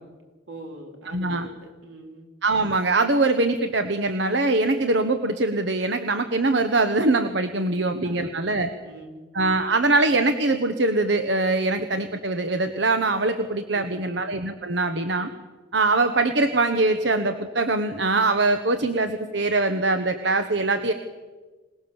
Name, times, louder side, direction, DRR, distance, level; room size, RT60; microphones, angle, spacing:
voice 1, 0.5-1.5 1.8-2.3 7.7-8.4 8.8-9.3 13.7-14.2, right 2 dB, 90° right, 2 dB, 4.3 m, -42 dB
voice 2, 1.1-1.5 2.4-8.7 9.3-15.3 15.7-20.9, right 2 dB, 70° right, 8 dB, 1.2 m, -23 dB
26.5 x 19.5 x 7.2 m, 1.3 s
head